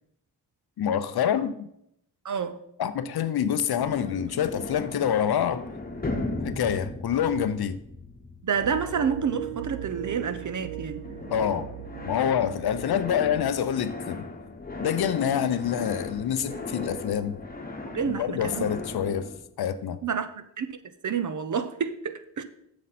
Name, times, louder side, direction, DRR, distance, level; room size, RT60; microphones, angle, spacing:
voice 1, 0.8-1.7 2.8-5.7 6.4-7.8 11.3-11.7 12.0-14.2 14.8-17.4 18.0-19.3 19.6-20.0, left 9 dB, 65° left, 0.7 m, -26 dB
voice 2, 2.2-2.6 8.4-11.0 17.9-18.7 20.0-20.7 21.0-22.4, right 6 dB, 45° right, 0.8 m, -29 dB
sound 1, 3.8-10.7 11.0-19.4, left 2 dB, 20° left, 1.1 m, -37 dB
sound 2, 8.6-13.9, right 11 dB, 85° right, 0.6 m, -39 dB
7.5 x 6.9 x 4.2 m
cardioid pair, 75°, 41 cm